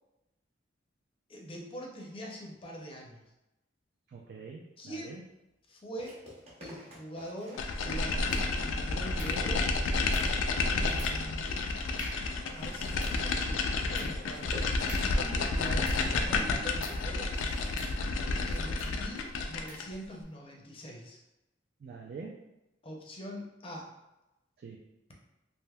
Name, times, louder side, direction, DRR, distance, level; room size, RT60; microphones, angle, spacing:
voice 1, 1.3-3.2 4.8-5.2 5.7-6.1 6.6-9.7 10.7-11.5 12.5-17.3 18.4-21.2 22.8-23.9, equal, 30° left, 0 dB, 0.5 m, -43 dB
voice 2, 4.1-5.2 21.8-22.4 24.6-24.8, right 4 dB, 55° right, 0 dB, 0.3 m, -45 dB
sound 1, 5.0-5.2 6.0-9.0 9.4-9.5 9.8-17.9 18.2-19.3, left 1 dB, 35° right, 0.8 m, -51 dB
sound 2, 7.6-19.9, left 3 dB, 80° left, 0.3 m, -30 dB
sound 3, 8.3-8.7 9.2-9.7 10.1-10.5 11.0-11.3 11.6-11.7 12.0-12.4 12.8-16.3 16.8-17.1 17.8-18.4 18.8-19.0 19.7-20.0, equal, 5° right, 0.7 m, -47 dB
3.3 x 2.6 x 2.2 m, 0.94 s
head